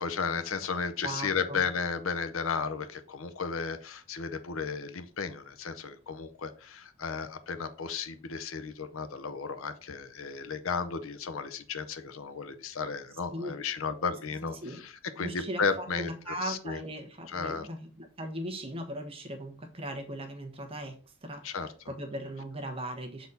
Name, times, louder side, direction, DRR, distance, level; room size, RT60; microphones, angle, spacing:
voice 1, 0.0-16.8 17.3-17.7 21.4-21.7, left 5 dB, 65° left, 10 dB, 0.6 m, -34 dB
voice 2, 1.0-1.6 13.3-13.6 14.4-14.8 15.1-21.6 21.9-23.3, right 1 dB, 25° right, 3 dB, 1.1 m, -38 dB
7.0 x 4.1 x 4.0 m, 0.39 s
head